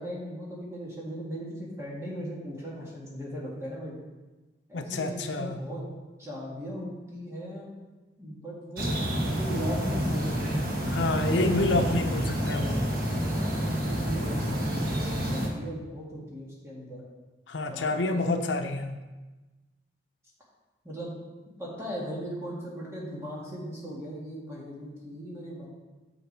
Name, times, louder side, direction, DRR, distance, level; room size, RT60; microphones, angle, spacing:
voice 1, 0.0-4.0 4.7-5.9 6.2-7.7 8.2-8.9 9.4-10.6 13.8-17.0 17.7-18.2 20.8-21.1 21.6-25.7, equal, 15° right, -5 dB, 1.8 m, -38 dB
voice 2, 4.7-5.6 10.9-12.8 17.5-19.0, left 2 dB, 80° left, 6 dB, 0.7 m, -28 dB
sound 1, 8.8-15.5, equal, 50° right, 1.4 m, -28 dB
6.9 x 6.8 x 4.6 m, 1.2 s
head